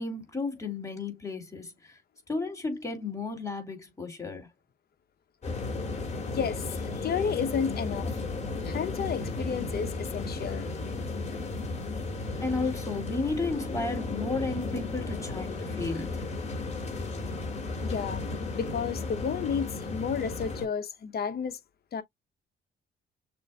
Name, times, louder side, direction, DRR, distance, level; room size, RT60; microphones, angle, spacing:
voice 1, 0.0-2.0 2.3-4.5 12.4-16.2, left 3 dB, 15° left, 2.5 m, -33 dB
sound 1, 5.4-20.7, left 3 dB, 35° left, 2.3 m, -34 dB
voice 2, 6.3-8.1 8.6-10.7 17.8-18.2 18.5-21.6 21.9-22.0, left 7 dB, 50° left, 0.9 m, -31 dB
6.7 x 2.6 x 2.4 m
cardioid pair, 90°, 20 cm